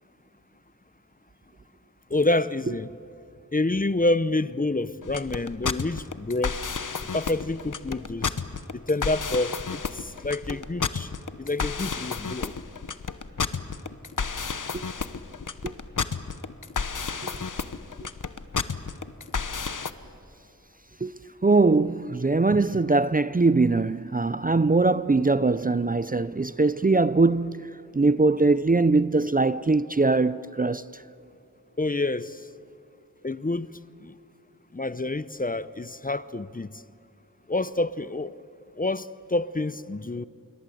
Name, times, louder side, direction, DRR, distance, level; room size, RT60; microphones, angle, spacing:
voice 1, 2.1-2.9 3.5-6.6 7.1-8.3 8.7-11.1 11.4-12.5 31.8-32.4 33.2-33.7 34.0-34.1 34.7-36.8 37.5-38.3 38.8-40.3, left 2 dB, 25° left, 0.6 m, -28 dB
sound 1, 5.0-19.9, left 5 dB, 65° left, 1.0 m, -31 dB
voice 2, 21.4-31.0, right 3 dB, 25° right, 0.5 m, -22 dB
27.0 x 23.0 x 7.8 m
wide cardioid pair, 55°, 34 cm